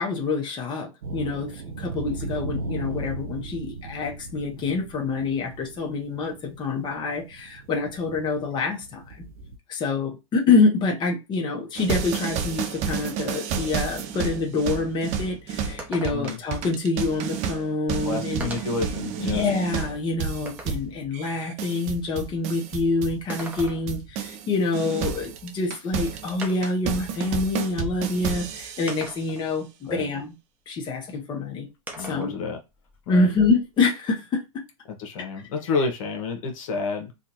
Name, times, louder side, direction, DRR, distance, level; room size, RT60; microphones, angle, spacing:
voice 1, 0.0-9.0 9.7-18.5 19.2-30.3 30.7-31.7 32.0-32.3 33.1-34.6, left 3 dB, 25° left, 1.0 m, -26 dB
sound 1, 1.0-9.6, right 3 dB, 80° right, 0.6 m, -37 dB
sound 2, 11.8-24.5 24.7-29.1, right 7 dB, 40° right, 0.6 m, -31 dB
sound 3, 15.8-16.5 17.6-17.7 18.4-18.9 19.5-20.9 23.1-24.1 25.6-25.7 26.4-26.9 27.9-28.0 28.9-29.5 31.9-32.3 32.7-33.8, right 1 dB, 10° right, 0.9 m, -40 dB
voice 2, 18.0-19.4 29.8-30.0 32.0-32.6 33.1-33.3 34.9-37.1, left 4 dB, 65° left, 1.2 m, -29 dB
3.7 x 2.4 x 2.8 m
hypercardioid pair, 120°, 19 cm